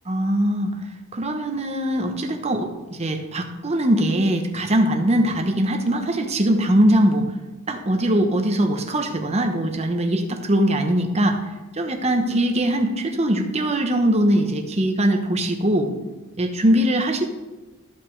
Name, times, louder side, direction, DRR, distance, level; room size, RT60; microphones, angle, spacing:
voice 1, 0.1-0.8 1.1-7.2 7.7-11.4 11.7-15.9 16.4-17.3, right 1 dB, 30° right, 5 dB, 0.9 m, -21 dB
14.0 x 5.9 x 3.3 m, 1.2 s
head